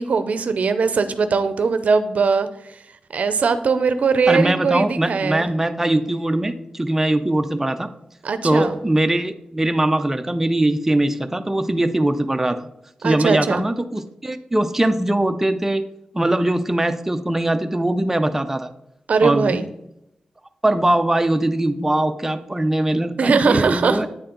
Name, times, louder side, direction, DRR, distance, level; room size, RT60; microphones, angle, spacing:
voice 1, 0.0-2.5 3.1-5.5 8.2-8.8 13.0-13.6 19.1-19.6 23.2-24.1, right 5 dB, 70° right, 11 dB, 0.5 m, -20 dB
voice 2, 4.3-7.9 8.4-12.6 13.0-15.8 16.1-18.7 19.2-19.6 20.6-24.1, right 1 dB, 15° right, 8 dB, 0.4 m, -21 dB
8.8 x 4.3 x 3.8 m, 0.82 s
wide cardioid pair, 100°, 3 cm